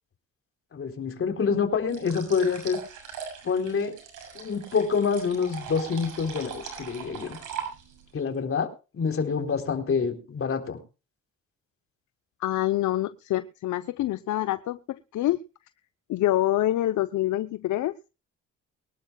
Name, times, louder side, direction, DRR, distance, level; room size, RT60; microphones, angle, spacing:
voice 1, 0.7-2.8 3.4-3.9 4.3-7.4 8.1-8.7 8.9-10.8, left 5 dB, 45° left, 4 dB, 3.7 m, -27 dB
sound 1, 1.9-8.1, right 7 dB, 90° right, 7.1 m, -40 dB
voice 2, 12.4-15.4 16.1-18.0, left 14 dB, 75° left, 12 dB, 0.7 m, -26 dB
23.5 x 12.0 x 2.3 m, 0.31 s
cardioid pair, 90°, 30 cm